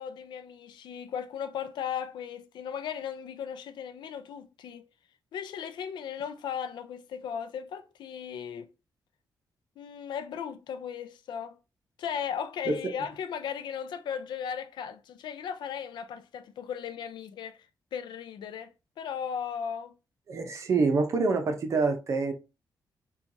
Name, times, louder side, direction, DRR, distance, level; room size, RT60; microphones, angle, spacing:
voice 1, 0.0-4.9 5.3-8.7 9.8-11.6 12.0-17.7 17.9-19.9, left 8 dB, 85° left, 0.4 m, -36 dB
voice 2, 20.3-22.3, right 4 dB, 40° right, 0.6 m, -26 dB
4.3 x 2.3 x 2.6 m
wide cardioid pair, 175°, 8 cm